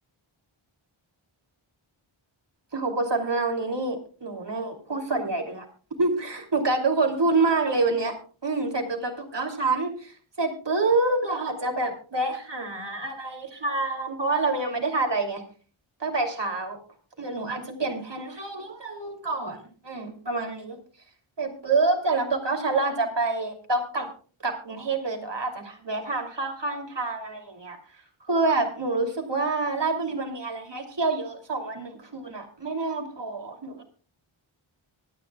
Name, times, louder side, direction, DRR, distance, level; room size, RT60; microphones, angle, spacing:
voice 1, 2.7-5.7 6.0-8.1 8.4-15.4 16.0-16.8 17.2-20.8 21.4-24.1 24.4-27.8 28.3-33.8, right 3 dB, 55° right, 3 dB, 2.9 m, -27 dB
24.0 x 9.7 x 2.3 m, 0.39 s
wide cardioid pair, 50°, 50 cm